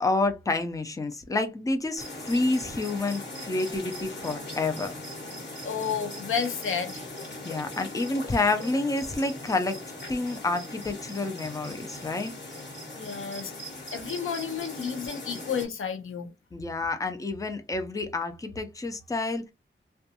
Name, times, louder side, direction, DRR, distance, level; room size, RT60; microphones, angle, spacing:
voice 1, 0.0-4.9 7.4-9.8 10.1-12.3 16.5-19.5, left 2 dB, 15° left, 0.4 m, -29 dB
sound 1, 2.0-15.7, left 1 dB, 55° left, 1.2 m, -40 dB
voice 2, 5.6-7.1 13.0-16.3, left 6 dB, 85° left, 0.5 m, -31 dB
2.5 x 2.2 x 2.7 m
wide cardioid pair, 85°, 21 cm